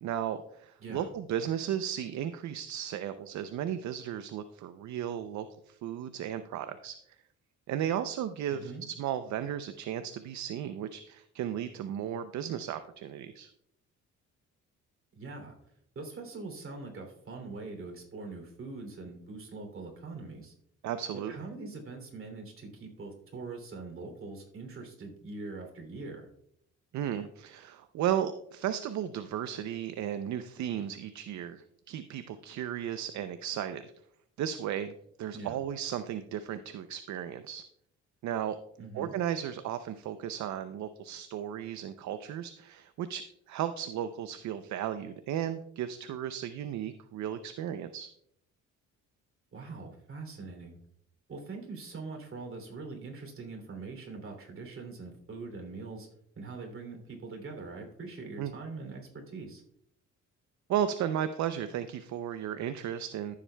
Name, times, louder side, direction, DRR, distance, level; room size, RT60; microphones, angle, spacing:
voice 1, 0.0-7.0 7.7-13.5 20.8-21.3 26.9-33.8 34.4-34.9 35.2-37.6 38.2-38.6 38.9-48.1 58.4-58.5 60.7-63.4, right 10 dB, 70° right, 10 dB, 0.6 m, -35 dB
voice 2, 8.5-8.8 15.1-15.5 15.9-20.5 21.3-26.3 35.3-35.6 38.8-39.1 49.5-50.8 51.3-56.1 56.3-59.6, right 3 dB, 45° right, 3 dB, 2.9 m, -43 dB
14.5 x 7.3 x 2.2 m, 0.71 s
cardioid pair, 90°, 30 cm